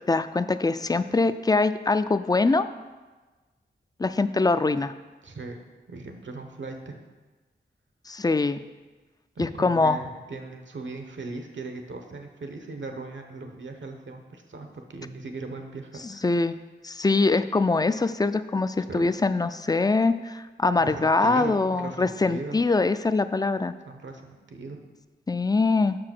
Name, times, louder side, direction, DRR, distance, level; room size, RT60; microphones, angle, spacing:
voice 1, 0.1-2.7 4.0-4.9 8.1-8.6 9.4-10.0 16.0-16.6 16.8-23.7 25.3-26.0, left 3 dB, 20° left, 12 dB, 0.4 m, -23 dB
voice 2, 5.2-5.6 5.9-7.0 9.4-16.2 18.9-19.1 20.8-22.6 23.9-24.9, right 3 dB, 70° right, 5 dB, 0.9 m, -38 dB
5.9 x 4.8 x 6.0 m, 1.3 s
cardioid pair, 45°, 20 cm